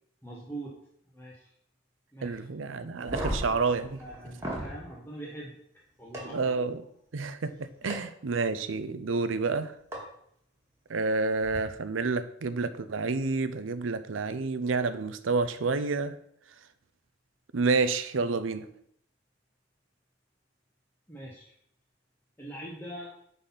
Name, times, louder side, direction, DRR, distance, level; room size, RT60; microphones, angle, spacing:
voice 1, 0.2-0.8 1.1-1.5 2.1-2.4 4.0-5.6 6.0-6.5 7.8-8.0 21.1-21.5 22.4-23.2, right 1 dB, 10° left, -5 dB, 1.2 m, -42 dB
voice 2, 2.2-4.0 6.2-6.8 7.1-9.7 10.9-16.2 17.5-18.7, right 4 dB, 90° right, 13 dB, 0.6 m, -29 dB
sound 1, 3.0-4.8 6.1-6.2 7.9-8.0 9.9-10.0 11.4-11.6, right 1 dB, 15° right, 2.1 m, -35 dB
9.9 x 4.2 x 5.7 m, 0.70 s
head